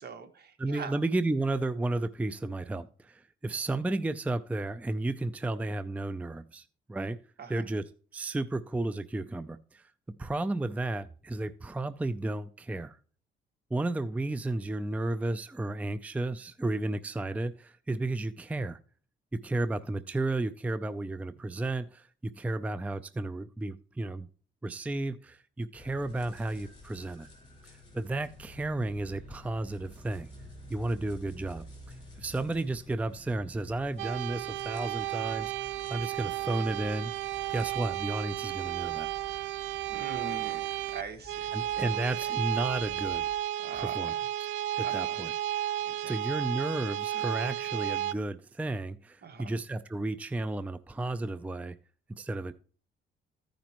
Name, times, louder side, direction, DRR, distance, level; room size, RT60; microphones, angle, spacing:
voice 1, 0.0-1.0 7.4-7.7 39.9-41.6 41.9-42.4 43.6-44.3 44.8-45.2 45.8-46.2 49.2-49.6, right 5 dB, 55° right, 8 dB, 1.5 m, -43 dB
voice 2, 0.6-7.2 7.5-7.8 8.1-9.8 10.2-13.0 13.7-18.8 19.3-24.3 24.6-27.3 27.9-30.3 30.7-31.6 32.2-37.1 37.5-39.1 41.5-43.2 43.7-44.1 44.8-45.3 46.1-51.8 52.2-52.5, right 2 dB, 5° right, 13 dB, 0.4 m, -33 dB
sound 1, 25.7-43.4, left 1 dB, 20° left, 5.2 m, -51 dB
sound 2, 34.0-48.1, right 13 dB, 70° right, 0.4 m, -33 dB
14.5 x 5.1 x 3.0 m, 0.42 s
cardioid pair, 90°, 20 cm